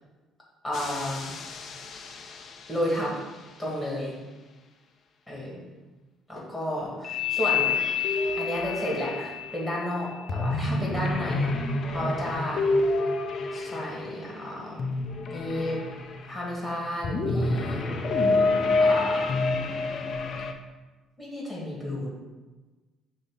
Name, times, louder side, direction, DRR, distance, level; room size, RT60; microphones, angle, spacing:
voice 1, 0.6-1.3 2.7-3.1 3.6-4.2 5.3-5.6 6.3-7.8 8.4-11.5 11.9-12.6 13.5-15.0 15.3-15.8 16.3-18.3 18.8-19.3 21.2-22.1, left 1 dB, 5° left, -5 dB, 1.8 m, -32 dB
sound 1, 0.7-2.7 7.0-14.3 14.8-16.4 17.0-20.5, left 3 dB, 40° left, 0.5 m, -28 dB
6.7 x 2.8 x 5.6 m, 1.2 s
cardioid pair, 160°, 0 cm